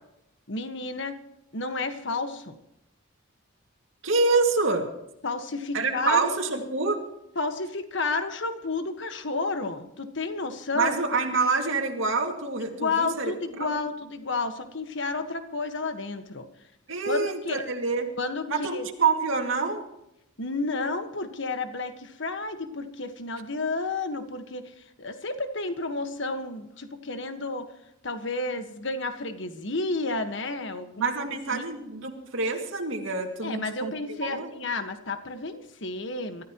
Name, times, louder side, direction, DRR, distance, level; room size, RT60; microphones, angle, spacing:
voice 1, 0.5-1.2 1.5-2.6 5.2-6.4 7.3-10.9 12.7-16.4 17.1-17.6 18.2-18.9 20.4-27.7 28.0-31.7 33.4-36.4, left 3 dB, 60° left, 8 dB, 1.6 m, -31 dB
voice 2, 4.0-4.9 5.7-7.0 10.8-13.3 13.6-13.8 16.9-18.1 18.5-19.8 31.0-34.5, right 4 dB, 70° right, 2 dB, 2.3 m, -26 dB
24.5 x 14.0 x 3.1 m, 0.85 s
head